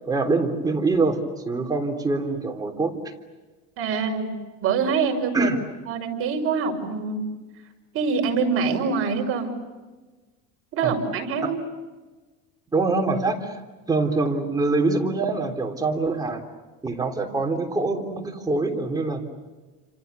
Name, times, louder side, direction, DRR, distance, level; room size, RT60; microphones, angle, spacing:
voice 1, 0.0-1.2 1.5-2.9 5.3-5.6 10.8-11.0 12.7-13.6 13.9-16.4 16.8-19.2, right 3 dB, 10° right, 1 dB, 3.5 m, -24 dB
voice 2, 3.8-4.3 4.6-5.5 5.9-7.2 7.9-9.5 10.7-11.6, right 5 dB, 45° right, 2 dB, 6.0 m, -24 dB
29.5 x 27.0 x 6.9 m, 1.2 s
cardioid pair, 145°, 32 cm